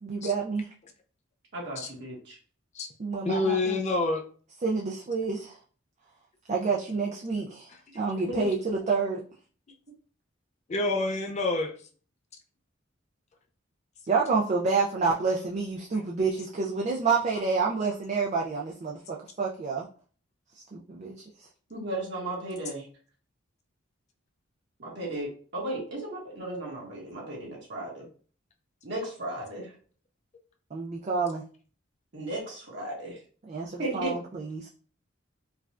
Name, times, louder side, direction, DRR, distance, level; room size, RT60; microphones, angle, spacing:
voice 1, 0.0-0.7 3.0-3.8 4.6-5.6 6.5-9.2 14.1-19.9 20.7-21.5 30.7-31.4 33.5-34.7, right 4 dB, 35° right, -1 dB, 0.4 m, -28 dB
voice 2, 1.5-2.4 21.7-22.9 24.8-28.1 28.8-29.7 32.1-33.2 33.8-34.1, right 1 dB, 60° right, -3 dB, 1.5 m, -35 dB
voice 3, 3.2-4.2 10.7-11.7, left 2 dB, 35° left, 3 dB, 0.4 m, -27 dB
4.6 x 2.3 x 2.4 m, 0.42 s
head